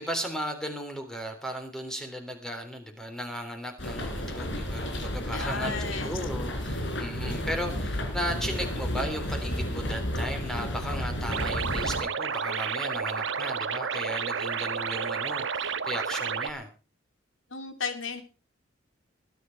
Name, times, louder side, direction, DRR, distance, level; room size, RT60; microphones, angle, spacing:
voice 1, 0.0-16.7, equal, 5° left, 5 dB, 3.4 m, -36 dB
sound 1, 3.8-12.0, equal, 65° left, 4.0 m, -32 dB
voice 2, 5.3-6.2 17.5-18.2, left 4 dB, 80° left, 7 dB, 3.0 m, -34 dB
sound 2, 11.3-16.5, right 6 dB, 70° right, 1.1 m, -31 dB
20.5 x 10.5 x 4.6 m, 0.34 s
head